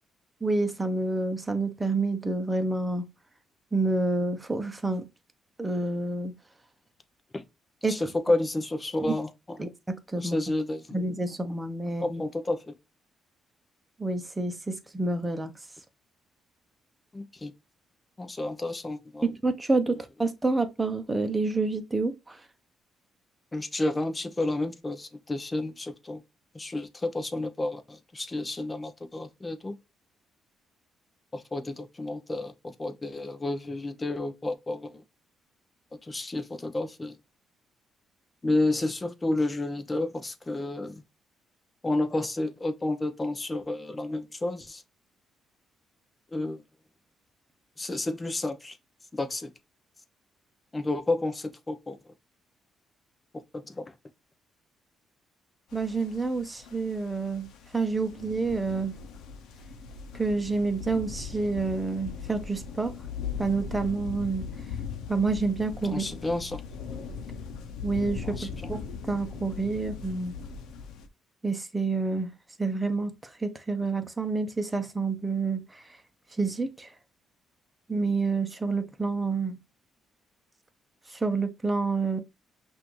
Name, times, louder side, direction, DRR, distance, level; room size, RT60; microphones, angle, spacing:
voice 1, 0.4-3.1 3.7-5.1 5.6-6.3 7.8-8.0 9.0-9.1 9.6-10.4 10.9-12.2 14.0-15.5 19.2-22.5 55.7-59.0 60.1-62.9 63.4-64.5 65.1-66.0 67.8-68.8 69.1-70.3 71.4-72.3 72.6-76.0 76.4-76.9 77.9-79.6 81.1-82.2, right 3 dB, 15° right, 0.9 m, -28 dB
voice 2, 7.9-9.3 10.2-11.0 12.0-12.7 17.1-17.5 18.2-19.2 23.5-26.2 26.5-29.8 31.3-35.0 36.0-37.2 38.4-41.0 41.8-44.8 46.3-46.6 47.8-48.8 49.1-49.5 50.7-52.0 53.7-53.8 65.8-66.6 68.2-68.7, left 2 dB, 20° left, 0.8 m, -30 dB
sound 1, 55.7-71.1, left 6 dB, 85° left, 0.8 m, -39 dB
5.7 x 2.6 x 3.1 m
cardioid pair, 90°, 0 cm